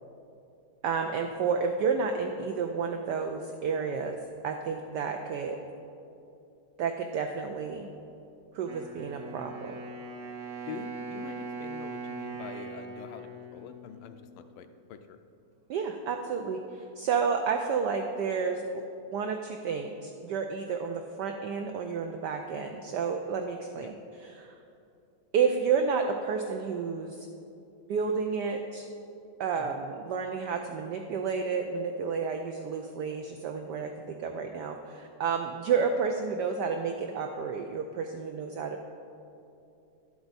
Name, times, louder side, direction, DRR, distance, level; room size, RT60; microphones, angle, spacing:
voice 1, 0.8-4.2 4.4-5.6 6.8-7.9 8.5-9.7 15.7-18.8 19.1-24.0 24.2-24.5 25.3-27.3 27.9-28.9 29.4-38.9, right 5 dB, 80° right, 4 dB, 0.9 m, -31 dB
Wind instrument woodwind instrument, 8.7-14.6, right 3 dB, 40° right, 0.9 m, -41 dB
voice 2, 10.7-15.2 23.8-23.9 29.6-29.8, left 7 dB, 80° left, 9 dB, 1.4 m, -45 dB
11.5 x 7.9 x 4.0 m, 2.7 s
omnidirectional pair, 2.4 m